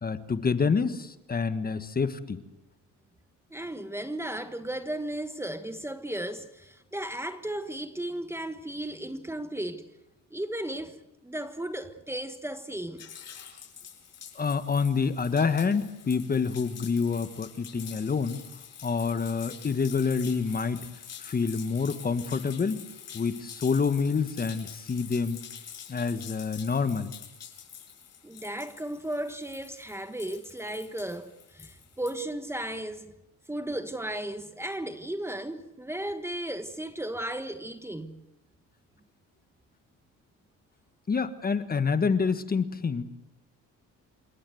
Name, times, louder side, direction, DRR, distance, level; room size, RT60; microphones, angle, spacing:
voice 1, 0.0-2.4 14.3-18.4 18.8-20.9 21.2-22.8 23.1-25.4 25.9-27.1 41.1-43.0, left 5 dB, 30° left, 1.5 m, -27 dB
voice 2, 3.5-9.9 10.3-11.0 11.2-13.0 28.2-33.1 33.5-38.2, right 1 dB, 10° right, 1.3 m, -35 dB
sound 1, 13.0-32.2, left 8 dB, 55° left, 7.7 m, -46 dB
28.5 x 18.0 x 7.9 m
cardioid pair, 90°, 31 cm